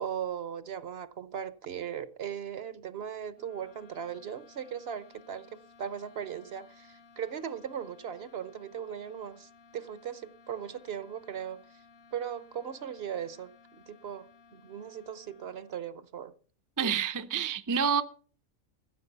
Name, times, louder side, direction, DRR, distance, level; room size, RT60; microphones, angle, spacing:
voice 1, 0.0-11.6 12.1-16.3, right 8 dB, 55° right, 0.9 m, -38 dB
sound 1, 3.3-16.0, left 5 dB, 50° left, 1.0 m, -58 dB
voice 2, 16.8-18.0, right 6 dB, 25° right, 0.4 m, -28 dB
15.0 x 7.5 x 6.7 m
omnidirectional pair, 1.4 m